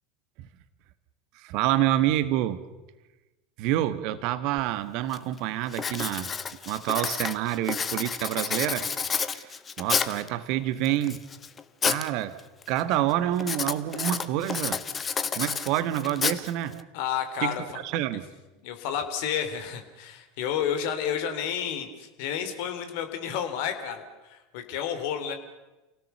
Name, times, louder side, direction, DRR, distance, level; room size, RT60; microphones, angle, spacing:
voice 1, 1.4-2.6 3.6-6.3 6.6-8.9 9.3-9.5 9.8-11.2 11.8-12.4 12.7-14.8 15.3-16.8 17.4-17.6 17.8-18.3, right 13 dB, 55° right, 13 dB, 1.5 m, -27 dB
Writing, 4.6-4.7 5.1-5.4 5.7-10.3 10.8-12.1 12.4-12.8 13.4-16.8, left 6 dB, 25° left, 1.4 m, -30 dB
voice 2, 16.9-17.6 18.1-18.2 18.6-25.3, left 8 dB, 55° left, 7 dB, 3.2 m, -31 dB
29.0 x 18.0 x 6.9 m, 1.1 s
figure-of-eight pair, 80°, 0 cm